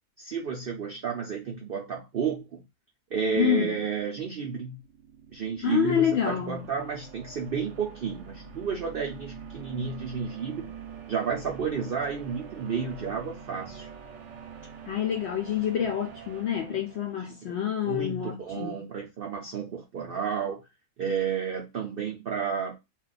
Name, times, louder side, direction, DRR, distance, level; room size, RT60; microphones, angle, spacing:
voice 1, 0.2-2.6 3.1-4.8 5.3-10.7 11.1-13.9 17.1-17.4 17.8-20.6 21.0-22.8, right 6 dB, 90° right, 0.5 m, -31 dB
voice 2, 3.3-3.7 5.6-6.6 14.9-18.8, left 9 dB, 80° left, 0.6 m, -27 dB
sound 1, 4.7-17.6, right 6 dB, 60° right, 0.8 m, -45 dB
2.3 x 2.3 x 3.9 m
omnidirectional pair, 1.7 m